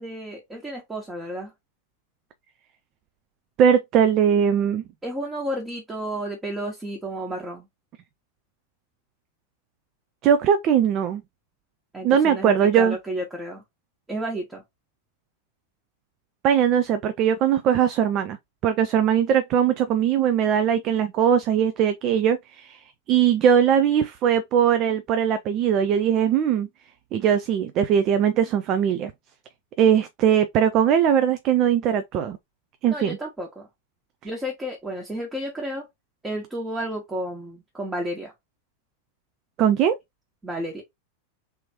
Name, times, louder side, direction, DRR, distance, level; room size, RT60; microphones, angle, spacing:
voice 1, 0.0-1.5 5.0-7.7 11.9-13.6 14.1-14.6 32.9-33.7 34.2-35.9 36.2-38.3 40.4-40.8, right 1 dB, 10° right, 1.2 m, -32 dB
voice 2, 3.6-4.8 10.2-11.2 12.0-13.0 16.4-18.4 18.6-26.7 27.1-29.1 29.8-32.4 32.8-33.2 39.6-39.9, right 8 dB, 35° right, 0.4 m, -20 dB
3.5 x 3.0 x 2.9 m
figure-of-eight pair, 90°, 0 cm